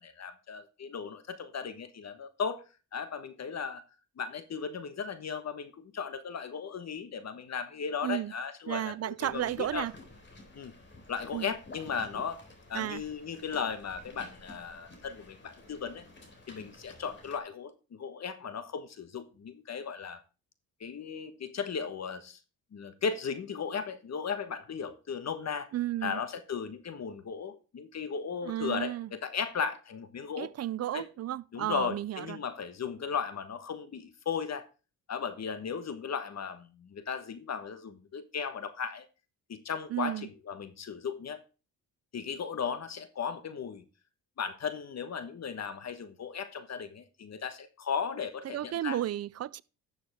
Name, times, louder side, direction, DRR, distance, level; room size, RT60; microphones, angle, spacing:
voice 1, 0.0-2.6 2.9-3.8 4.2-9.9 10.5-10.7 11.1-12.4 12.7-16.0 16.5-20.2 20.8-22.4 22.7-25.7 26.0-28.9 29.2-30.5 30.9-31.1 31.5-34.7 35.1-39.1 39.5-41.4 42.1-43.8 44.4-49.0, left 6 dB, 45° left, 1.3 m, -36 dB
voice 2, 8.0-8.3 8.7-9.9 11.3-11.5 12.7-13.0 25.7-26.2 28.4-29.1 30.4-32.4 39.9-40.3 48.4-49.6, right 13 dB, 45° right, 0.5 m, -33 dB
sound 1, 9.2-17.4, left 2 dB, 30° left, 3.8 m, -52 dB
12.0 x 7.1 x 3.5 m
cardioid pair, 85°, 36 cm